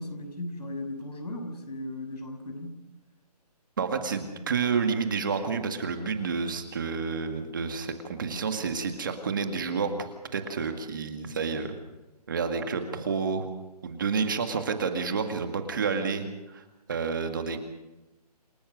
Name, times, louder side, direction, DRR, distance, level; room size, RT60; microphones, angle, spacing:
voice 1, 0.0-2.8, left 1 dB, 80° left, 5 dB, 6.5 m, -37 dB
voice 2, 3.8-11.7 12.3-13.5 13.8-16.6 16.9-17.6, right 5 dB, 30° right, 6 dB, 2.0 m, -29 dB
28.0 x 17.0 x 6.4 m, 1.1 s
hypercardioid pair, 175°, 21 cm